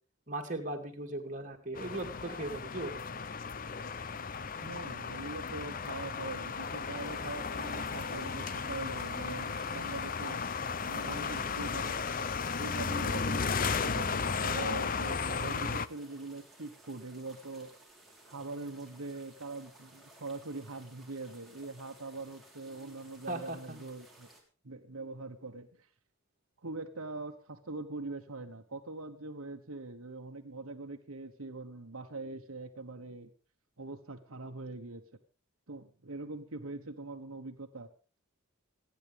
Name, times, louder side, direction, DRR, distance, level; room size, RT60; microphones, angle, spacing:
voice 1, 0.3-3.0 23.3-23.8, right 2 dB, 35° right, 2 dB, 2.7 m, -38 dB
sound 1, 1.7-15.9, left 5 dB, 40° left, 0.6 m, -35 dB
voice 2, 4.6-10.4 10.9-12.0 12.5-17.7 18.2-24.3 24.6-25.9 26.6-33.3 33.8-35.0 35.7-37.9, right 3 dB, 80° right, 5 dB, 1.2 m, -42 dB
sound 2, 7.0-24.4, right 2 dB, ahead, 3.8 m, -58 dB
28.0 x 9.7 x 3.5 m, 0.37 s
head